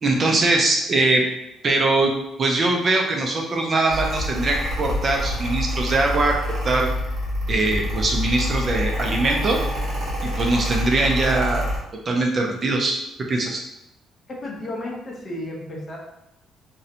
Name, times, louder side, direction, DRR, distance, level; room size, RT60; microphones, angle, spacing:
voice 1, 0.0-1.2 1.6-2.1 2.4-6.4 6.6-6.9 7.5-9.6 10.2-11.7 12.1-13.0 13.3-13.6, right 2 dB, 35° right, 1 dB, 0.3 m, -21 dB
Mechanical fan, 3.9-11.8, left 1 dB, 65° right, 1.2 m, -26 dB
voice 2, 14.4-16.0, left 1 dB, 30° left, -2 dB, 0.6 m, -32 dB
2.5 x 2.0 x 2.7 m, 0.86 s
cardioid pair, 145°, 0 cm